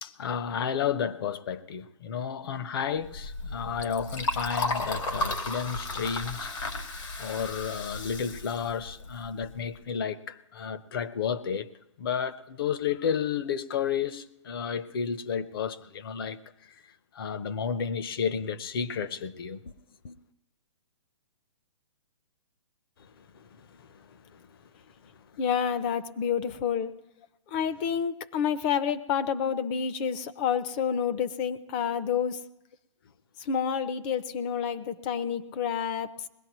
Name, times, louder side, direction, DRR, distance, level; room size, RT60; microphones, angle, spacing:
voice 1, 0.0-6.5 7.2-11.7 12.0-16.4 17.1-19.6 20.0-20.2 23.2-24.4, left 7 dB, 50° left, 0.8 m, -32 dB
Liquid, 3.0-9.7, left 2 dB, 80° left, 2.7 m, -34 dB
voice 2, 25.4-26.9 27.5-32.4 33.4-36.1, left 7 dB, 20° left, 0.5 m, -29 dB
21.0 x 17.0 x 3.0 m
hypercardioid pair, 160°, 16 cm